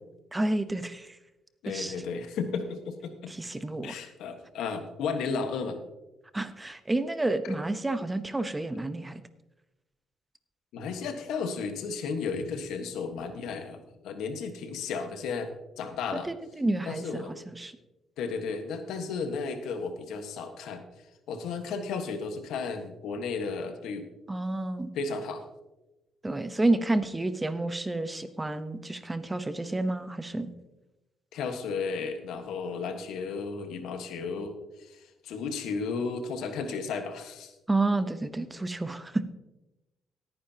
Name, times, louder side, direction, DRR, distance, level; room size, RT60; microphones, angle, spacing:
voice 1, 0.3-1.1 1.7-1.9 3.3-3.9 6.3-9.2 16.6-17.7 24.3-24.9 26.2-30.5 37.7-39.3, right 2 dB, 15° right, 11 dB, 0.9 m, -30 dB
voice 2, 1.6-3.3 3.8-5.8 10.7-15.5 15.8-16.3 16.8-17.3 18.2-20.8 21.3-24.1 24.9-25.4 31.3-37.5, left 5 dB, 85° left, 7 dB, 1.4 m, -34 dB
18.0 x 9.8 x 2.9 m, 1.0 s
cardioid pair, 90°, 0 cm